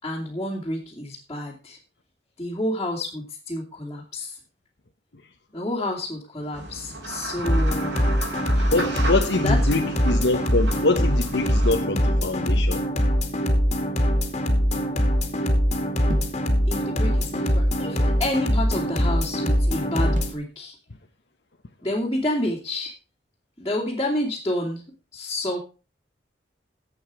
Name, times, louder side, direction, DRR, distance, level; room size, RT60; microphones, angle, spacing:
voice 1, 0.0-1.8 2.4-4.4 5.5-7.9 8.5-8.7 9.4-9.6 16.7-20.7 21.8-22.9 23.6-25.6, left 1 dB, 20° left, 2.8 m, -29 dB
sound 1, 6.5-11.7, right 2 dB, 85° right, 5.3 m, -34 dB
sound 2, 7.4-20.3, equal, 35° left, 2.5 m, -22 dB
voice 2, 8.7-12.8, left 2 dB, 80° left, 1.1 m, -24 dB
sound 3, 16.1-16.4 17.3-18.5 20.2-20.4, right 1 dB, 45° right, 2.2 m, -36 dB
12.5 x 8.2 x 4.9 m
head